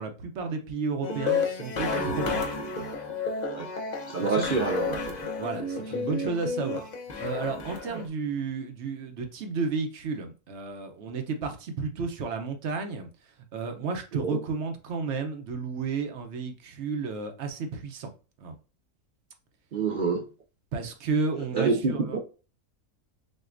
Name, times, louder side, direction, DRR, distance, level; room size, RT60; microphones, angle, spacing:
voice 1, 0.0-2.9 4.2-4.5 5.4-6.9 7.2-18.1 18.4-18.6 20.7-22.2, right 4 dB, 60° right, 0.9 m, -32 dB
sound 1, 1.0-8.0, left 4 dB, 50° left, 0.5 m, -31 dB
voice 2, 4.1-5.1 7.9-8.0 14.1-14.4 19.7-20.2 21.5-22.2, right 4 dB, 80° right, 0.4 m, -27 dB
6.3 x 2.3 x 2.5 m
omnidirectional pair, 1.6 m